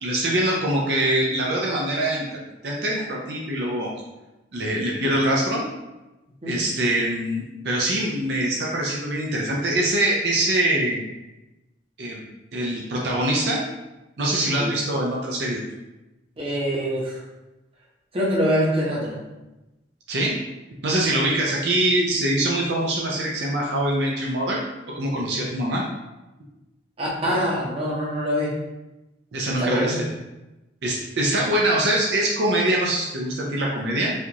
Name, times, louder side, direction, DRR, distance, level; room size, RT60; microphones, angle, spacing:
voice 1, 0.0-2.3 2.6-3.9 4.5-5.6 6.5-11.0 12.0-12.2 12.5-13.6 14.2-15.6 20.1-20.3 20.8-24.6 25.0-25.8 29.3-30.0 30.8-34.1, right 1 dB, 65° right, -3 dB, 0.5 m, -23 dB
voice 2, 16.4-17.2 18.1-19.2 21.1-21.2 27.0-28.5 29.6-30.0, equal, 30° right, -4 dB, 0.8 m, -24 dB
4.2 x 2.4 x 2.9 m, 1.0 s
head